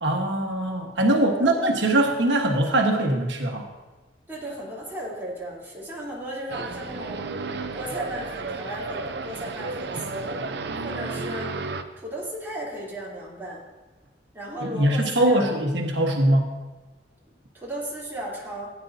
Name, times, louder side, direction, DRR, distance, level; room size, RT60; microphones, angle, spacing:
voice 1, 0.0-3.7 14.6-16.5, right 1 dB, 85° right, 2 dB, 1.3 m, -22 dB
voice 2, 1.1-1.6 4.3-7.3 7.7-10.3 10.8-11.5 12.0-13.6 14.3-15.6 17.5-18.7, right 1 dB, 10° right, -7 dB, 3.2 m, -35 dB
sound 1, 6.5-11.8, right 3 dB, 65° right, 0.7 m, -32 dB
16.5 x 9.6 x 2.7 m, 1.2 s
head